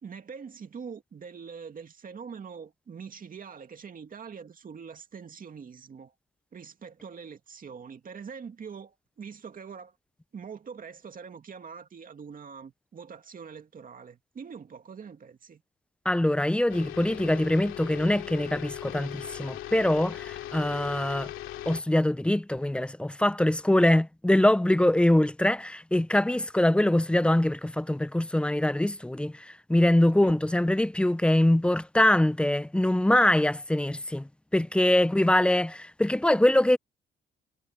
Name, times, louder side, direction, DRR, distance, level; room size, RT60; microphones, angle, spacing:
voice 1, 0.0-6.1 6.5-10.0 10.3-15.6 30.2-30.4, right 6 dB, 45° right, 2.4 m, -43 dB
voice 2, 16.1-21.3 21.7-36.8, left 1 dB, 5° left, 0.5 m, -23 dB
sound 1, 16.7-21.8, left 13 dB, 85° left, 2.6 m, -39 dB
cardioid pair, 90°, 20 cm